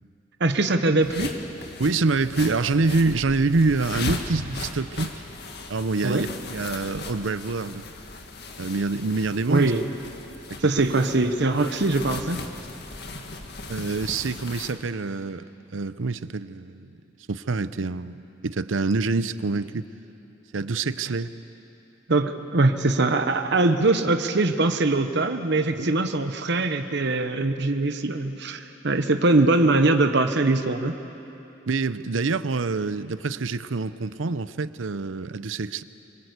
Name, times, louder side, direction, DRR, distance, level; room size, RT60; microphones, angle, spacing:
voice 1, 0.4-1.3 6.0-6.2 9.5-9.8 10.6-12.4 22.1-30.9, right 2 dB, 60° right, 7 dB, 1.1 m, -22 dB
sound 1, 1.0-14.7, left 2 dB, 60° left, 1.9 m, -37 dB
voice 2, 1.8-5.1 5.7-7.8 8.6-9.7 13.7-15.5 15.7-17.0 17.3-19.9 20.5-21.3 25.7-25.9 31.7-35.8, right 3 dB, 85° right, 14 dB, 0.7 m, -26 dB
25.0 x 21.0 x 8.2 m, 2.9 s
head